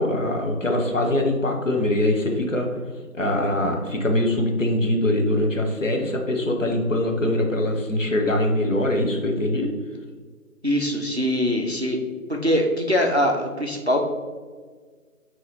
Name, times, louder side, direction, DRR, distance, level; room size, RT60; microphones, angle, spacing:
voice 1, 0.0-2.7 3.1-9.7, left 1 dB, 60° left, 2 dB, 0.7 m, -23 dB
voice 2, 10.6-12.0 12.4-14.0, equal, 50° right, 1 dB, 0.4 m, -22 dB
5.0 x 2.8 x 2.8 m, 1.5 s
figure-of-eight pair, 180°, 45 cm